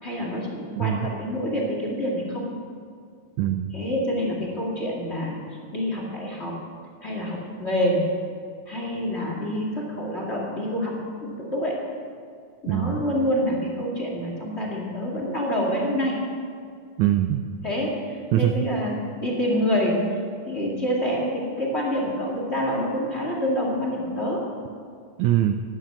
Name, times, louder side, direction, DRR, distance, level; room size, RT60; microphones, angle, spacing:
voice 1, 0.0-2.5 3.7-5.3 5.7-6.6 7.0-8.0 8.7-11.0 11.2-11.7 12.6-16.2 17.6-20.0 20.4-24.4, equal, 20° left, -2 dB, 2.2 m, -27 dB
voice 2, 3.4-3.7 12.7-13.0 17.0-17.4 18.3-18.7 25.2-25.5, right 12 dB, 85° right, 8 dB, 1.6 m, -22 dB
13.5 x 11.5 x 7.8 m, 2.2 s
omnidirectional pair, 3.9 m